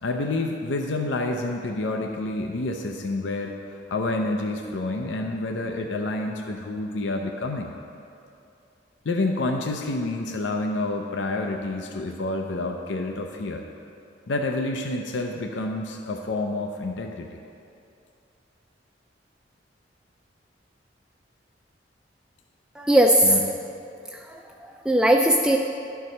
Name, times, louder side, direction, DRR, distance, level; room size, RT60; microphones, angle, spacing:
voice 1, 0.0-7.7 9.0-13.6 14.3-17.4 23.2-23.4, left 2 dB, 75° left, 3 dB, 0.5 m, -28 dB
voice 2, 22.8-23.4 24.1-25.6, right 1 dB, 5° right, 1 dB, 0.3 m, -19 dB
11.5 x 4.7 x 5.4 m, 2.6 s
head